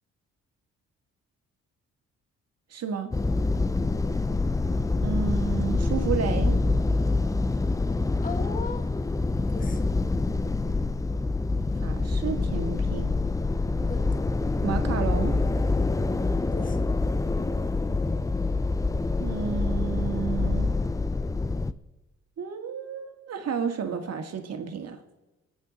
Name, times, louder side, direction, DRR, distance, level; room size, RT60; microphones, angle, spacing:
voice 1, 2.7-3.1 5.0-6.6 11.8-13.2 14.6-15.4 19.2-20.7 22.4-25.0, right 7 dB, 55° right, 5 dB, 2.1 m, -31 dB
sound 1, 3.1-21.7, left 3 dB, 10° left, 0.5 m, -26 dB
voice 2, 8.2-8.9 9.5-9.9 13.9-14.3 16.3-16.8, left 5 dB, 25° left, 6 dB, 1.5 m, -38 dB
26.5 x 9.4 x 4.2 m, 1.1 s
cardioid pair, 90°, 30 cm